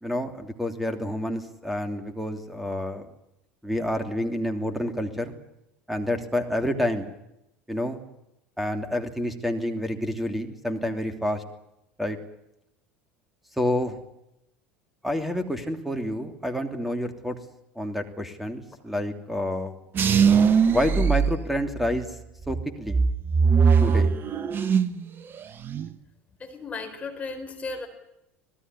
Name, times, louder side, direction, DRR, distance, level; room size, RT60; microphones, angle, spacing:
voice 1, 0.0-3.1 3.6-5.4 5.9-7.1 7.7-8.0 8.6-11.4 12.0-12.2 13.6-14.0 15.0-17.4 17.7-19.7 20.7-22.2 22.5-23.0 23.8-24.1, left 1 dB, ahead, 7 dB, 2.9 m, -28 dB
sound 1, 20.0-22.0 22.5-25.0 25.3-25.9, right 6 dB, 35° right, 1.1 m, -21 dB
voice 2, 26.4-27.9, left 4 dB, 20° left, 4 dB, 4.4 m, -35 dB
26.0 x 18.5 x 9.9 m, 0.86 s
figure-of-eight pair, 70°, 7 cm